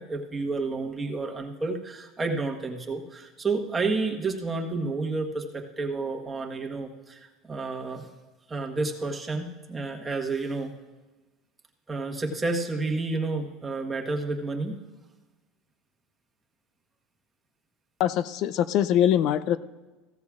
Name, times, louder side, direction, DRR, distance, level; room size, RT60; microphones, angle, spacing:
voice 1, 0.0-7.2 7.4-8.1 8.5-10.7 11.9-14.8, right 3 dB, 15° right, 1 dB, 1.3 m, -30 dB
voice 2, 18.0-19.6, left 10 dB, 55° left, 14 dB, 0.5 m, -23 dB
15.5 x 13.5 x 2.5 m, 1.2 s
supercardioid pair, 125°, 0 cm